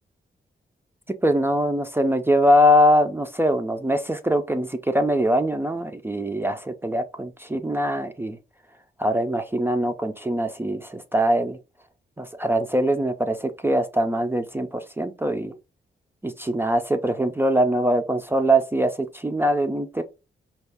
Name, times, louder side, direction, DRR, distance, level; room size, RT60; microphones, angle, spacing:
voice 1, 1.2-8.4 9.0-11.6 12.2-15.6 16.2-20.0, equal, 10° right, 0.3 m, -22 dB
4.4 x 2.3 x 3.3 m
wide cardioid pair, 145°, 19 cm